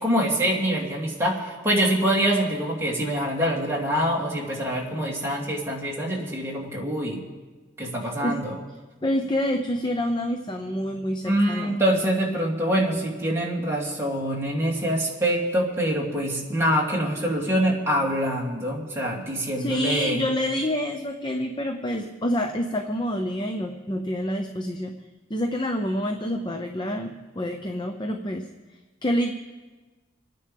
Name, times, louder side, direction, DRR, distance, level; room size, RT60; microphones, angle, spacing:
voice 1, 0.0-7.2 7.8-8.6 11.2-20.2, equal, 15° right, -4 dB, 2.8 m, -25 dB
voice 2, 9.0-11.8 19.6-24.9 25.3-28.5 29.0-29.3, left 1 dB, 25° left, 4 dB, 0.7 m, -27 dB
28.0 x 9.7 x 3.5 m, 1.3 s
head